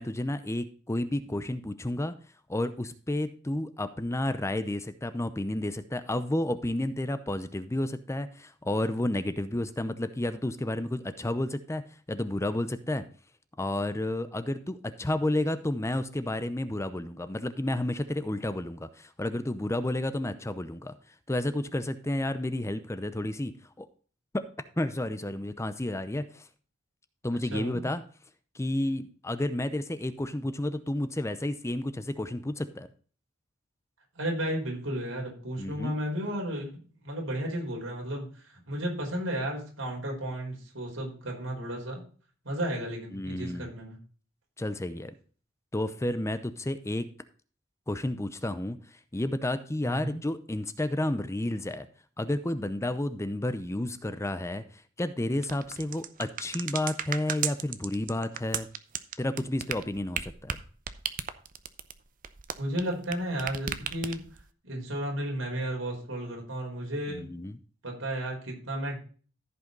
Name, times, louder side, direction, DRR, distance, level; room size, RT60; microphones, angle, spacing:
voice 1, 0.0-2.1 2.5-11.8 12.1-13.0 13.6-20.9 21.3-23.5 23.8-23.9 24.3-24.4 24.8-26.5 27.2-28.0 28.5-32.9 35.6-35.9 43.1-43.7 44.6-45.1 45.7-47.1 47.9-48.8 49.1-51.9 52.2-58.7 59.2-60.6 67.1-67.6, left 1 dB, 15° left, 11 dB, 0.7 m, -31 dB
voice 2, 27.5-27.9 34.1-42.0 42.4-44.0 49.8-50.2 62.6-64.2 64.6-67.2 67.8-69.1, right 1 dB, 75° right, 0 dB, 4.7 m, -33 dB
sound 1, 55.4-63.1 63.4-64.4, right 8 dB, 45° right, 0.8 m, -34 dB
14.5 x 5.7 x 3.9 m, 0.40 s
head